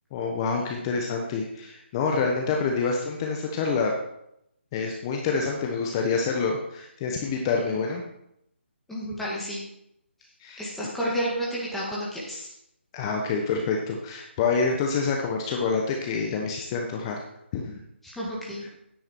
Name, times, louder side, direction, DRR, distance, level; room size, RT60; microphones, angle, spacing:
voice 1, 0.1-3.9 4.7-8.0 10.4-10.7 12.9-17.2 17.5-17.7, left 5 dB, 25° left, 1 dB, 1.1 m, -27 dB
voice 2, 8.9-9.6 10.6-12.5 18.0-18.7, equal, 5° left, -6 dB, 2.1 m, -31 dB
9.5 x 8.6 x 4.5 m, 0.78 s
figure-of-eight pair, 155°, 7 cm